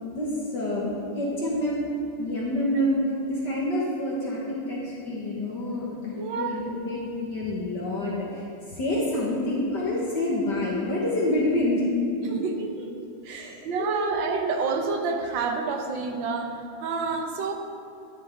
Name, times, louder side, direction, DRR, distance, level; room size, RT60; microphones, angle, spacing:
voice 1, 0.1-0.9 1.2-3.0 3.3-11.9 13.3-14.2, left 1 dB, 60° left, -6 dB, 2.0 m, -28 dB
voice 2, 6.2-6.6 12.2-12.9 13.2-16.5 16.8-17.5, right 4 dB, 70° right, 4 dB, 1.6 m, -28 dB
13.5 x 10.0 x 3.5 m, 2.6 s
omnidirectional pair, 2.2 m